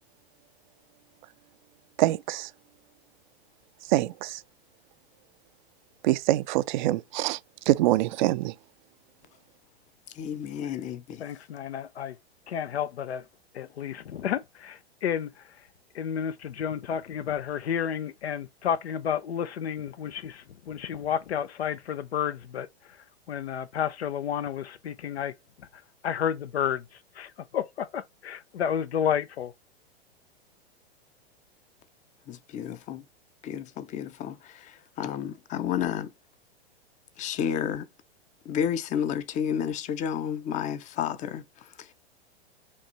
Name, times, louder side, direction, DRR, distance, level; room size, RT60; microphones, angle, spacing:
voice 1, 2.0-2.5 3.9-4.4 6.0-7.4 7.7-8.5, right 16 dB, 50° right, 0.5 m, -24 dB
voice 2, 10.1-11.2 32.3-33.0 33.4-36.1 37.2-37.9 38.5-41.9, left 8 dB, 25° left, 0.6 m, -31 dB
voice 3, 11.2-12.2 12.5-13.3 13.5-15.7 15.9-29.5, left 8 dB, 80° left, 0.6 m, -31 dB
5.3 x 2.4 x 2.9 m
hypercardioid pair, 110°, 32 cm